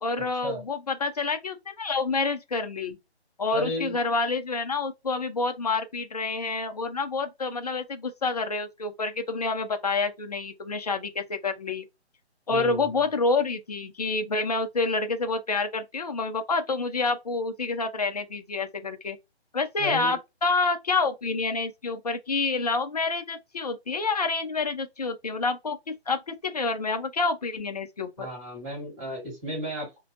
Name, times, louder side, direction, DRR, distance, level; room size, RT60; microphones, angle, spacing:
voice 1, 0.0-3.0 3.4-11.8 12.5-19.2 19.5-28.3, left 3 dB, 35° left, 0.4 m, -28 dB
voice 2, 3.5-3.9 12.5-12.9 19.8-20.2 28.2-30.0, equal, 10° right, 1.5 m, -33 dB
2.5 x 2.2 x 2.7 m
hypercardioid pair, 165°, 33 cm